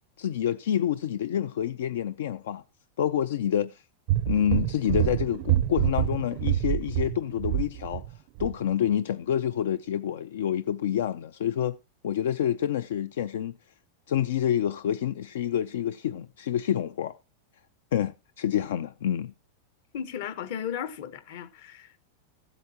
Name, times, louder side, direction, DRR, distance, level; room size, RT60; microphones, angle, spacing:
voice 1, 0.2-2.6 3.0-3.8 4.3-8.1 8.4-11.8 12.0-13.5 14.1-17.2 17.9-19.3, left 10 dB, 80° left, 0.4 m, -28 dB
sound 1, 4.1-8.1 8.4-8.5, right 14 dB, 40° right, 0.4 m, -27 dB
voice 2, 19.9-22.0, left 8 dB, 50° left, 1.0 m, -35 dB
14.5 x 8.1 x 2.8 m
supercardioid pair, 170°, 0 cm